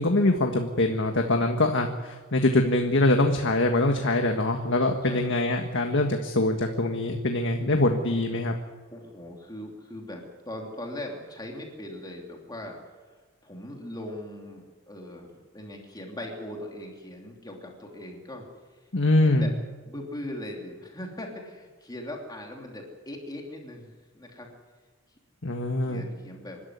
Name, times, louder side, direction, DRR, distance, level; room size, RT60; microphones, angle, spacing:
voice 1, 0.0-8.5 18.9-19.5 25.4-26.0, left 2 dB, 55° left, 4 dB, 1.6 m, -23 dB
voice 2, 5.0-5.4 8.1-8.2 8.9-12.8 13.4-18.4 19.2-19.5 19.8-24.5 25.8-26.6, left 1 dB, 20° left, 0 dB, 3.0 m, -40 dB
26.5 x 13.0 x 9.6 m, 1.4 s
head